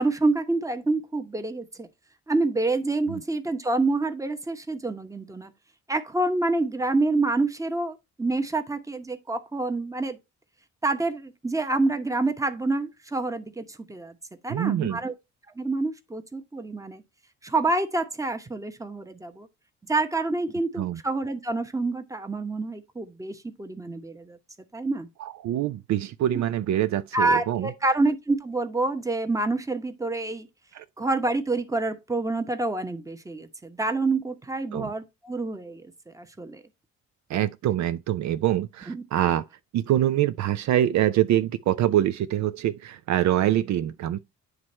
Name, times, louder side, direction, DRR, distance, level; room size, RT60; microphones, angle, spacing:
voice 1, 0.0-1.9 2.3-5.5 5.9-10.2 10.8-14.2 14.4-15.1 15.6-17.0 17.4-19.5 19.9-24.4 24.7-25.1 26.3-26.4 27.1-30.5 31.0-36.6 38.9-39.0, right 2 dB, 10° right, 1.0 m, -27 dB
voice 2, 14.5-15.0 20.8-21.0 25.2-27.7 30.7-30.8 34.7-34.9 37.3-39.4 39.7-44.2, right 12 dB, 65° right, 0.5 m, -25 dB
9.4 x 3.2 x 4.3 m
cardioid pair, 90°, 30 cm